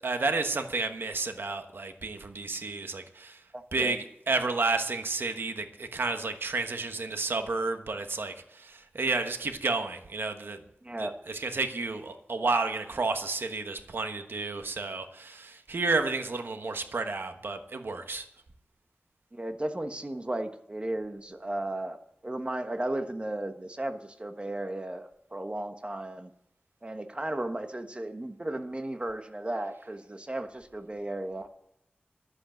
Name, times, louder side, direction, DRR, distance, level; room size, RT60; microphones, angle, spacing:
voice 1, 0.0-3.4 3.7-10.6 11.0-18.3, right 3 dB, 75° right, 7 dB, 1.2 m, -31 dB
voice 2, 3.5-3.9 10.8-11.1 19.3-22.0 22.2-26.3 26.8-31.5, right 1 dB, 30° right, 7 dB, 1.3 m, -35 dB
11.5 x 8.0 x 7.8 m, 0.74 s
wide cardioid pair, 50°, 4 cm